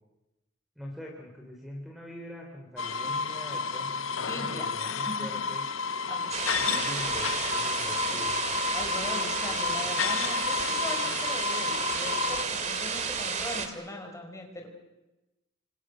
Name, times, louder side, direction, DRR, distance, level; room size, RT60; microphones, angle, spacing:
voice 1, 0.8-5.6 6.6-8.3, left 1 dB, ahead, 0 dB, 3.6 m, -43 dB
sound 1, 2.8-12.4, left 5 dB, 75° left, 0.8 m, -31 dB
voice 2, 4.3-5.3 6.1-6.4 6.7-6.8 8.1-8.3 8.7-14.7, left 1 dB, 15° left, 3 dB, 4.7 m, -40 dB
sound 2, 6.3-13.7, right 5 dB, 35° right, 2.5 m, -32 dB
30.0 x 25.5 x 6.4 m, 1.0 s
head